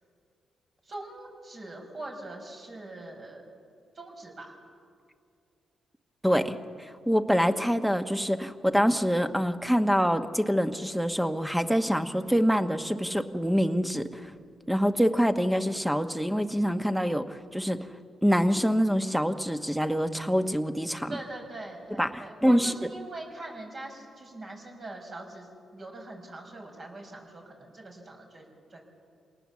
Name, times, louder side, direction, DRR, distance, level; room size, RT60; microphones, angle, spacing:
voice 1, 0.8-3.4 3.9-4.5 21.1-28.8, right 2 dB, 50° right, 1 dB, 5.6 m, -42 dB
voice 2, 6.2-14.3 14.7-17.8 18.2-21.2 22.0-22.7, equal, 5° right, 8 dB, 1.1 m, -25 dB
26.5 x 19.0 x 7.3 m, 2.3 s
cardioid pair, 75°, 0 cm